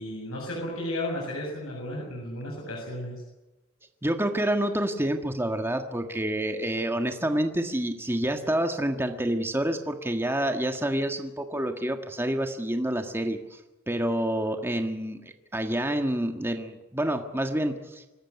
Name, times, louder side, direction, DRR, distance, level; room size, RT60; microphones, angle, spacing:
voice 1, 0.0-3.2, left 1 dB, 90° left, -1 dB, 7.3 m, -34 dB
voice 2, 4.0-13.6 13.9-18.1, right 1 dB, 10° right, 5 dB, 1.6 m, -28 dB
26.0 x 14.0 x 9.8 m, 1.0 s
head